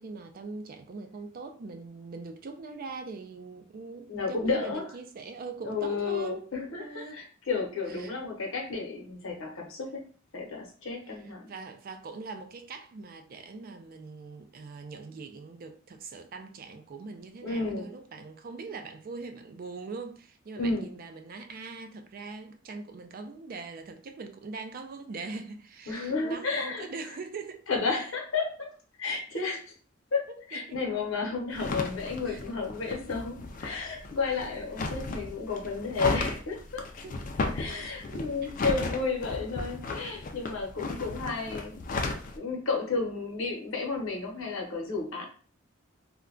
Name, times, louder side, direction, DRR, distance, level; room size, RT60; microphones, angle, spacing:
voice 1, 0.0-6.5 6.8-7.2 7.9-8.1 11.4-27.6 29.3-29.5 30.3-30.8 32.3-32.4 37.0-37.2 37.7-38.5, right 4 dB, 45° right, 0.4 m, -42 dB
voice 2, 4.1-4.9 5.6-10.0 10.3-11.5 17.4-17.9 20.6-20.9 25.9-27.2 27.7-28.7 29.0-29.6 30.1-36.8 37.5-41.8 42.3-45.3, left 4 dB, 80° left, 0.8 m, -32 dB
sound 1, 31.5-42.4, left 3 dB, 40° left, 0.3 m, -35 dB
2.2 x 2.2 x 3.7 m
head